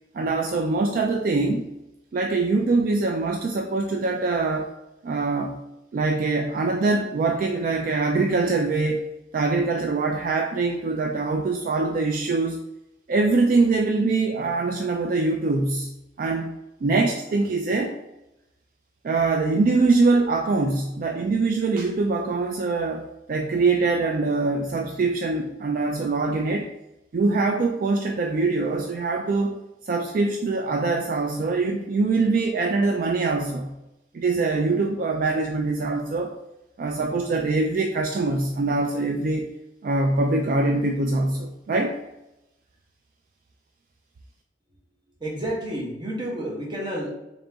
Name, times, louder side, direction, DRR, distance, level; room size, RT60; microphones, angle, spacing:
voice 1, 0.1-1.6 2.1-4.7 5.0-5.6 5.9-9.0 9.3-12.6 13.1-15.9 16.2-18.0 19.0-26.7 27.1-29.6 29.8-33.7 34.1-36.4 36.8-39.5 39.8-42.0, right 3 dB, 50° right, 3 dB, 0.3 m, -23 dB
voice 2, 45.2-47.1, right 1 dB, 25° right, -3 dB, 1.0 m, -30 dB
3.9 x 2.9 x 3.4 m, 0.93 s
head